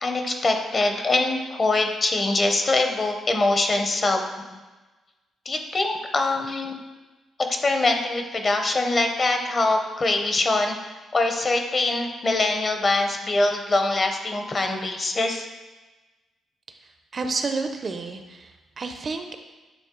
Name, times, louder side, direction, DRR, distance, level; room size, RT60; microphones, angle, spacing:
voice 1, 0.0-4.3 4.5-4.6 5.5-6.7 7.5-10.8 11.1-15.5, left 2 dB, 30° left, 4 dB, 0.7 m, -23 dB
voice 2, 17.1-19.4, right 4 dB, 35° right, 6 dB, 0.4 m, -30 dB
8.4 x 3.4 x 3.7 m, 1.2 s
cardioid pair, 130°, 0 cm